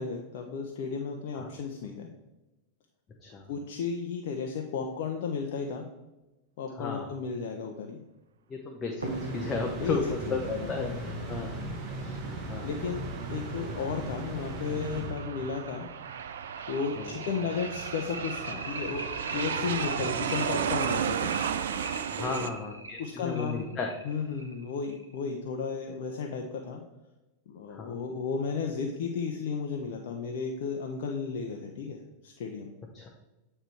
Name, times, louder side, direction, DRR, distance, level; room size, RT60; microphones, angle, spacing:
voice 1, 0.0-2.1 3.5-5.9 6.6-8.0 9.7-11.2 12.6-15.9 16.7-21.3 22.2-22.5 23.0-23.7 24.0-26.8 27.5-32.7, left 5 dB, 50° left, 2 dB, 0.7 m, -34 dB
voice 2, 8.5-11.6 12.0-12.2 12.5-12.7 17.0-17.1 22.1-23.9 27.7-28.0 32.9-33.1, left 4 dB, 20° left, 1 dB, 0.8 m, -34 dB
sound 1, 9.0-15.7, right 2 dB, 40° right, 1.2 m, -38 dB
sound 2, 9.0-12.2 13.6-13.7 14.1-14.2 14.7-14.8 15.2-25.2, right 2 dB, 80° right, 0.8 m, -41 dB
Aircraft, 12.3-22.5, right 8 dB, 60° right, 0.4 m, -34 dB
8.7 x 3.3 x 4.5 m, 1.0 s
figure-of-eight pair, 90°, 0 cm